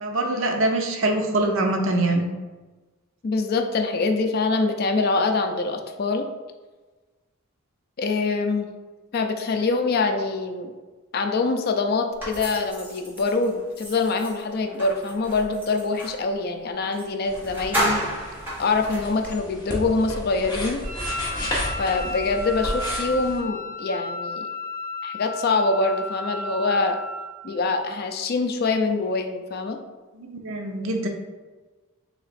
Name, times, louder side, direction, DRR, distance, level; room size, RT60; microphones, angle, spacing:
voice 1, 0.0-2.3 30.1-31.1, right 2 dB, 65° right, 3 dB, 0.6 m, -24 dB
voice 2, 3.2-6.2 8.0-8.7 9.1-10.7 11.1-18.0 18.6-20.8 21.8-24.5 25.0-27.0 27.4-29.8, left 3 dB, 45° left, 6 dB, 0.4 m, -24 dB
sound 1, 12.2-16.2 16.9-17.1 17.3-19.4, equal, 10° right, 1.2 m, -32 dB
sound 2, 17.2-23.4, left 1 dB, 20° left, 0.8 m, -33 dB
Wind instrument woodwind instrument, 20.8-27.4, left 2 dB, 25° right, 1.2 m, -33 dB
3.3 x 2.9 x 4.1 m, 1.3 s
head